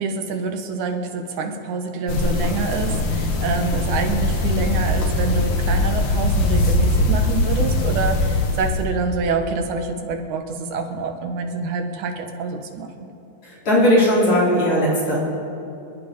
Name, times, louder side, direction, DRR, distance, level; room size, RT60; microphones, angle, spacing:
voice 1, 0.0-13.1, right 4 dB, 70° right, 5 dB, 2.5 m, -26 dB
sound 1, 2.1-8.9, left 2 dB, 55° left, 1.4 m, -21 dB
voice 2, 13.4-15.2, equal, 40° left, -6 dB, 4.5 m, -18 dB
27.5 x 9.6 x 5.2 m, 2.8 s
omnidirectional pair, 3.9 m